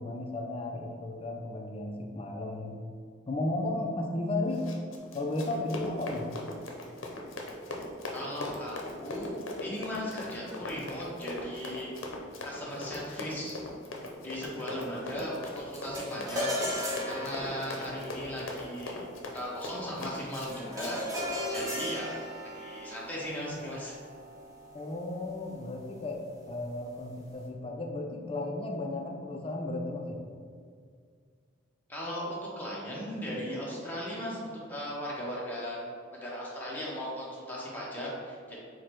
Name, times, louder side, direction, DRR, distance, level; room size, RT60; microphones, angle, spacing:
voice 1, 0.0-2.8 3.3-4.8 5.1-6.3 24.7-30.2, left 2 dB, 30° left, 2 dB, 0.4 m, -34 dB
Run, 4.5-21.7, left 2 dB, 80° left, 0.6 m, -40 dB
voice 2, 8.1-11.9 12.4-13.6 14.2-16.5 17.1-19.0 19.3-22.1 22.5-24.0 31.9-35.8 36.2-38.6, equal, 10° left, -6 dB, 0.8 m, -37 dB
sound 1, 15.7-25.2, equal, 20° right, 0.9 m, -37 dB
4.7 x 2.2 x 4.4 m, 2.1 s
head